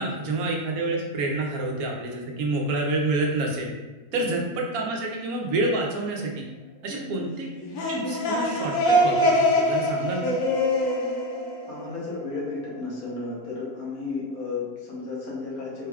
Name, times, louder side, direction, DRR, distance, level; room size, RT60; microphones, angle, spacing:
voice 1, 0.0-3.7 4.1-6.5 6.8-7.5 7.9-10.4, right 2 dB, 90° right, 0 dB, 1.2 m, -28 dB
voice 2, 4.1-4.4 6.9-7.2 11.7-15.9, left 3 dB, 90° left, -5 dB, 1.5 m, -34 dB
sound 1, 7.6-12.3, left 1 dB, 70° left, 1.0 m, -24 dB
3.9 x 2.3 x 3.3 m, 1.2 s
omnidirectional pair, 1.5 m